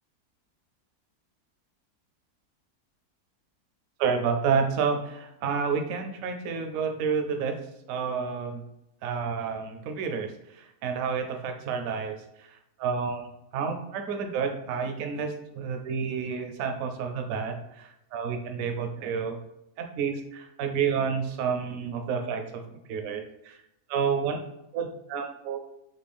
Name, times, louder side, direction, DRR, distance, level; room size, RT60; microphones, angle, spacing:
voice 1, 4.0-7.6 7.9-8.6 9.0-10.3 10.6-12.2 12.8-19.4 19.8-22.6 22.9-23.6 23.9-24.4 24.7-25.6, right 6 dB, 70° right, 5 dB, 1.0 m, -29 dB
4.3 x 2.9 x 3.4 m, 0.84 s
omnidirectional pair, 1.7 m